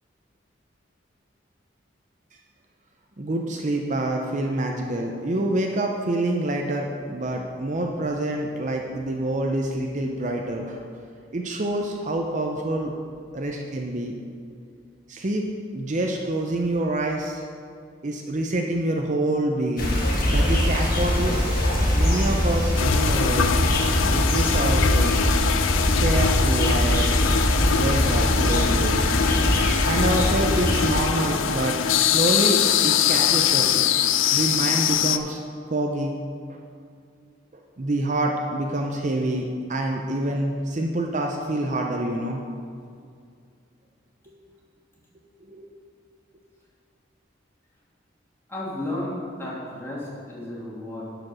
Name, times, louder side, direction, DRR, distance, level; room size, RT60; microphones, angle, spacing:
voice 1, 3.2-10.8 11.3-12.9 13.3-14.1 15.1-15.5 15.7-17.4 18.0-20.0 20.3-21.5 21.9-23.6 24.1-25.2 25.9-27.1 27.8-29.0 29.8-33.7 34.3-35.4 35.7-36.2 36.5-36.6 37.8-42.4 45.5-45.7, right 1 dB, 40° right, 2 dB, 0.6 m, -26 dB
sound 1, 19.8-31.0, equal, 45° left, 1.6 m, -22 dB
sound 2, 22.8-35.2, left 8 dB, 80° left, 0.5 m, -23 dB
voice 2, 48.5-51.0, left 1 dB, 15° left, -6 dB, 2.2 m, -33 dB
10.5 x 5.0 x 6.2 m, 2.3 s
head